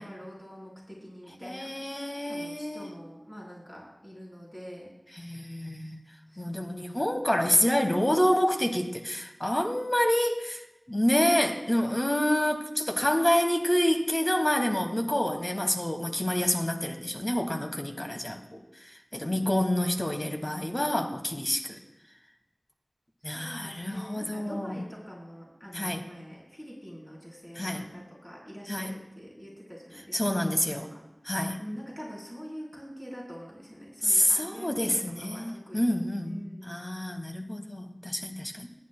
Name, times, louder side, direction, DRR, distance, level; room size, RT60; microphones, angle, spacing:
voice 1, 0.0-4.9 6.3-7.0 19.2-20.1 23.2-31.0 31.6-36.8, equal, 10° left, -5 dB, 3.8 m, -45 dB
voice 2, 1.4-2.9 5.1-6.0 6.4-10.6 10.9-21.8 23.2-24.8 25.7-26.0 27.5-27.8 28.7-28.9 30.1-30.9 31.2-31.6 34.0-38.7, left 1 dB, 30° left, 5 dB, 1.3 m, -28 dB
19.5 x 9.8 x 2.2 m, 0.99 s
wide cardioid pair, 45°, 0 cm